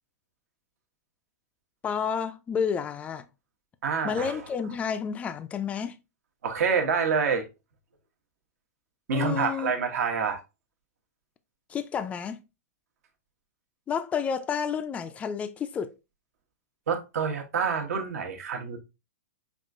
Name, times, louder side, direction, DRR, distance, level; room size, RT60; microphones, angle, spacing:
voice 1, 1.8-3.2 4.0-6.0 9.1-9.7 11.7-12.4 13.9-15.9, left 7 dB, 15° left, 0.3 m, -30 dB
voice 2, 3.8-4.4 6.4-7.4 9.1-10.4 16.9-18.8, right 6 dB, 70° right, 1.0 m, -27 dB
5.3 x 2.4 x 2.5 m
hypercardioid pair, 135°, 9 cm